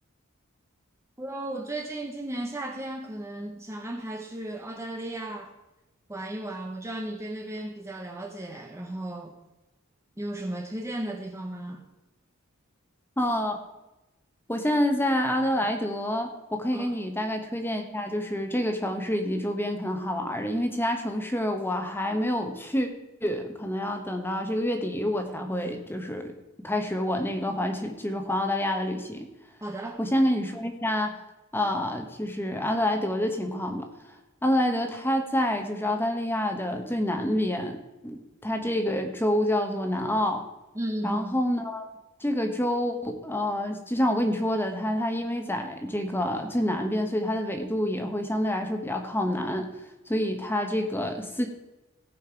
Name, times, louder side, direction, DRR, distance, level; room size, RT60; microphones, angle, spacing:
voice 1, 1.2-5.5 6.1-9.3 10.2-11.8 16.7-16.9 29.6-30.0 40.7-41.3, right 1 dB, 15° right, 1 dB, 0.8 m, -35 dB
voice 2, 13.2-13.6 14.5-22.9 23.2-26.3 26.6-29.3 30.0-31.1 31.5-33.9 34.4-37.8 38.0-40.4 41.0-41.9 42.2-49.7 50.1-51.5, left 1 dB, 10° left, 5 dB, 1.2 m, -27 dB
17.0 x 5.7 x 4.6 m, 0.99 s
head